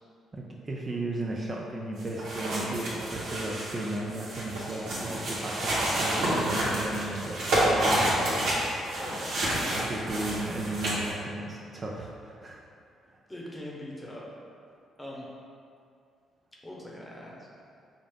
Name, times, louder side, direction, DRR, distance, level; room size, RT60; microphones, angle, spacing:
voice 1, 0.3-8.6 9.7-12.6, right 2 dB, 35° right, -2 dB, 0.4 m, -35 dB
sound 1, 2.0-11.1, right 1 dB, 75° right, 1.3 m, -29 dB
voice 2, 9.0-9.4 13.3-14.3 15.0-15.3 16.6-17.5, left 1 dB, 10° left, -4 dB, 0.9 m, -41 dB
5.3 x 2.5 x 3.6 m, 2.4 s
cardioid pair, 90°, 0 cm